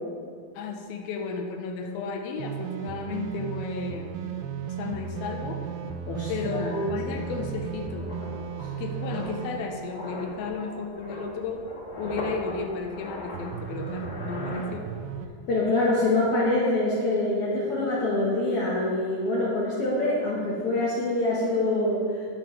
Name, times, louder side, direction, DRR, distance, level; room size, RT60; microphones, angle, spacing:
voice 1, 0.6-4.3 4.7-5.6 6.3-8.1 8.8-11.7 12.0-14.9, left 4 dB, 90° left, 4 dB, 2.6 m, -33 dB
sound 1, 2.4-11.0 13.3-15.3, right 7 dB, 85° right, 2.3 m, -36 dB
sound 2, 5.8-5.9 6.2-15.3 15.5-15.8, left 1 dB, 50° left, 2.6 m, -40 dB
voice 2, 6.1-6.9 15.5-22.0, left 2 dB, 75° left, -6 dB, 1.3 m, -25 dB
12.5 x 5.9 x 3.1 m, 2.2 s
omnidirectional pair, 4.2 m